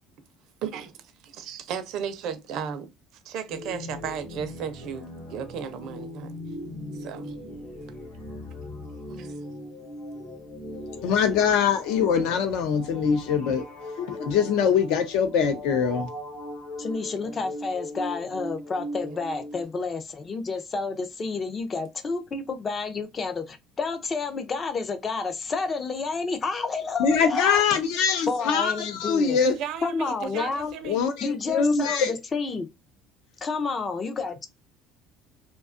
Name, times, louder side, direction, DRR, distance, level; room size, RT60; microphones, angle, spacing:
voice 1, 1.4-2.9 3.2-6.3 6.9-7.3 9.1-9.3 19.0-19.2 29.4-31.0, right 7 dB, 55° right, 0.5 m, -34 dB
sound 1, 3.5-19.6, left 1 dB, 50° left, 0.9 m, -39 dB
voice 2, 11.0-13.6 14.0-16.1 27.0-29.5 30.3-30.4 30.8-32.1, left 6 dB, 70° left, 0.6 m, -23 dB
voice 3, 16.8-27.8 28.3-29.4 29.8-30.7 31.2-32.7 33.4-34.5, left 4 dB, 25° left, 0.4 m, -30 dB
2.6 x 2.2 x 2.4 m
cardioid pair, 160°, 0 cm